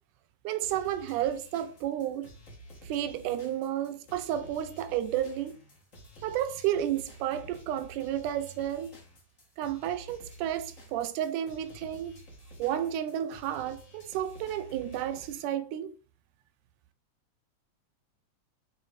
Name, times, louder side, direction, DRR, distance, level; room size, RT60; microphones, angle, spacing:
voice 1, 0.4-2.3 2.8-5.6 6.2-9.0 9.6-12.2 12.6-16.0, right 11 dB, 85° right, 2.1 m, -32 dB
sound 1, 0.6-15.4, right 1 dB, 35° left, 1.3 m, -51 dB
7.4 x 3.3 x 4.0 m
omnidirectional pair, 3.5 m